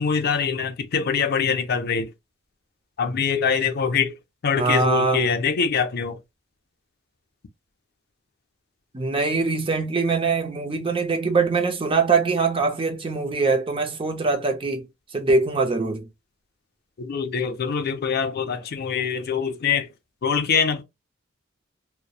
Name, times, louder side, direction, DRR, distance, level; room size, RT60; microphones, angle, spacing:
voice 1, 0.0-2.1 3.0-4.1 4.4-6.2 17.0-19.9 20.2-20.8, left 6 dB, 50° left, 0.4 m, -24 dB
voice 2, 4.6-5.3 8.9-14.8 15.1-16.1, right 4 dB, 25° right, 0.6 m, -23 dB
2.9 x 2.0 x 2.3 m
head